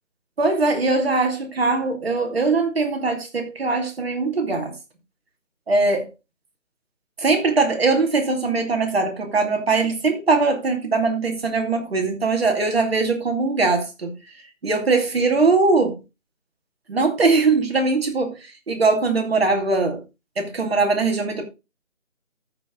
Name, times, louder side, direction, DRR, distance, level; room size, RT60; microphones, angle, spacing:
voice 1, 0.4-4.7 5.7-6.1 7.2-14.2 14.6-16.0 16.9-20.0 20.4-21.4, right 3 dB, 50° right, 2.7 m, -21 dB
13.5 x 5.4 x 3.8 m
figure-of-eight pair, 165°, 39 cm